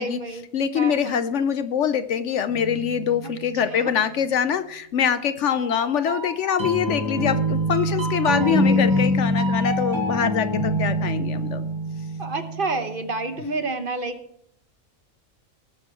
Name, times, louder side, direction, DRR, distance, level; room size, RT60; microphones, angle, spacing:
voice 1, 0.0-0.4 0.7-1.2 3.2-3.3 3.7-3.9 7.9-8.0 8.4-9.1 12.2-14.2, right 3 dB, 45° right, 8 dB, 1.1 m, -30 dB
voice 2, 0.5-11.7, left 8 dB, 65° left, 12 dB, 0.9 m, -24 dB
sound 1, 2.5-3.6 5.5-13.2, equal, 20° right, 2.7 m, -25 dB
19.0 x 6.5 x 4.4 m, 0.72 s
omnidirectional pair, 1.4 m